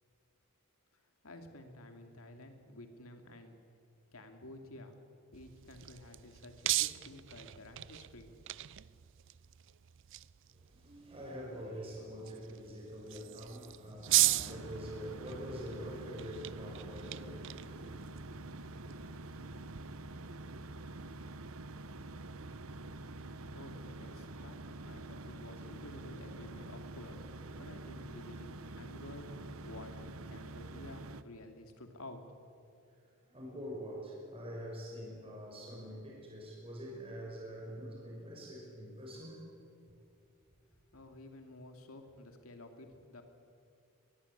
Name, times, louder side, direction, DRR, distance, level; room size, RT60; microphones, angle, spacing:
voice 1, 0.9-3.6 4.1-5.0 5.3-8.3 23.2-32.2 40.9-43.2, left 1 dB, 85° left, 5 dB, 2.7 m, -52 dB
sound 1, 5.3-19.8, right 17 dB, 60° right, 0.5 m, -38 dB
voice 2, 10.5-20.7 33.0-39.5, equal, 25° right, -2 dB, 5.7 m, -46 dB
sound 2, 14.1-31.2, right 2 dB, 80° right, 0.9 m, -46 dB
22.0 x 21.0 x 8.3 m, 2.4 s
head